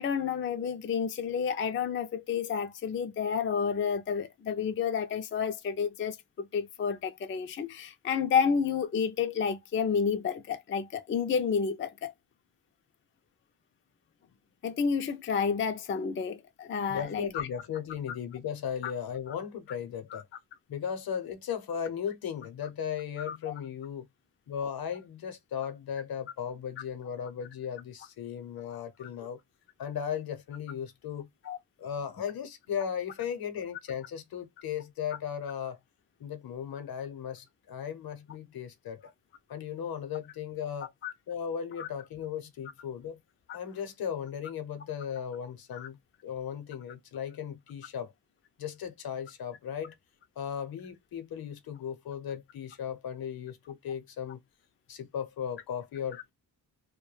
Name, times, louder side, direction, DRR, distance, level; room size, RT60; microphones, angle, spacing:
voice 1, 0.0-12.1 14.6-17.5 18.8-18.9 20.1-20.2 23.3-23.5 29.0-29.1 31.5-31.6 41.0-41.1 41.8-41.9 45.7-45.9, left 6 dB, 30° left, 0.4 m, -30 dB
voice 2, 16.9-20.3 20.7-24.1 24.5-29.4 29.8-31.3 31.8-35.8 36.2-39.1 39.5-40.9 41.3-43.2 43.5-46.0 46.2-48.1 48.6-49.9 50.4-54.4 54.9-56.3, left 8 dB, 65° left, 0.7 m, -36 dB
2.2 x 2.2 x 3.1 m
cardioid pair, 65°, 39 cm